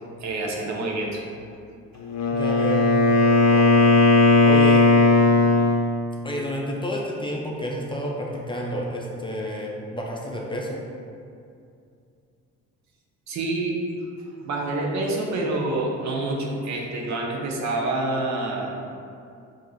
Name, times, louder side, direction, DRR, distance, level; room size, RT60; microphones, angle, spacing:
voice 1, 0.2-1.2 13.3-13.8 14.4-18.7, right 2 dB, 65° right, 0 dB, 0.8 m, -27 dB
Wind instrument woodwind instrument, 2.0-5.9, left 3 dB, 65° left, 0.6 m, -17 dB
voice 2, 2.3-2.9 3.5-3.9 4.5-4.8 6.2-10.8, equal, 15° left, -2 dB, 0.6 m, -30 dB
5.1 x 2.7 x 3.0 m, 2.5 s
cardioid pair, 90°, 30 cm